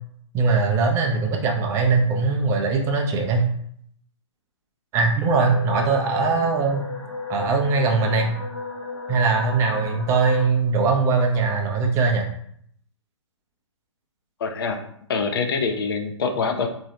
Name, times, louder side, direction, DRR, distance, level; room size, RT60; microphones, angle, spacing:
voice 1, 0.3-3.4 4.9-6.9 7.3-8.4 9.1-12.3, right 4 dB, 15° right, 2 dB, 0.5 m, -21 dB
sound 1, 5.4-10.5, left 3 dB, 75° left, 1.2 m, -34 dB
voice 2, 14.4-14.8 15.1-16.7, left 4 dB, 45° left, 5 dB, 0.5 m, -25 dB
3.8 x 2.7 x 2.8 m, 0.67 s
figure-of-eight pair, 125°, 16 cm